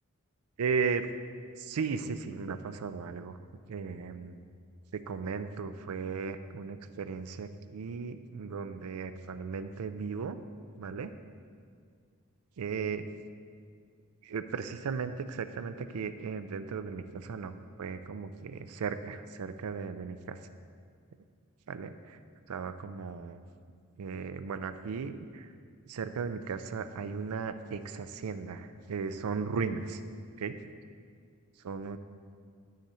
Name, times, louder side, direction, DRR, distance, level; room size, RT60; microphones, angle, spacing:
voice 1, 0.6-1.1 1.6-3.4 3.7-4.4 4.9-10.4 10.8-11.1 12.6-13.1 14.2-20.4 21.7-22.2 22.5-23.4 24.0-25.5 25.9-30.0 30.4-30.6 31.6-32.0, right 5 dB, 85° right, 10 dB, 0.4 m, -36 dB
8.2 x 6.4 x 4.2 m, 2.1 s
head